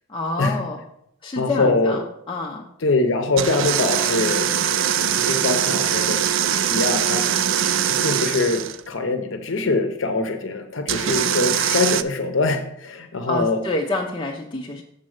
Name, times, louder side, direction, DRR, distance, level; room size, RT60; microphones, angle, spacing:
voice 1, 0.1-0.8 1.2-2.7 13.3-14.8, left 2 dB, 25° left, -1 dB, 0.5 m, -27 dB
voice 2, 1.4-2.0 2.8-4.5 5.1-6.2 6.6-7.2 7.9-13.6, left 3 dB, 70° left, 6 dB, 0.7 m, -23 dB
sound 1, 3.4-8.8 10.9-12.0, right 9 dB, 70° right, 0.4 m, -22 dB
7.5 x 4.2 x 6.3 m, 0.76 s
head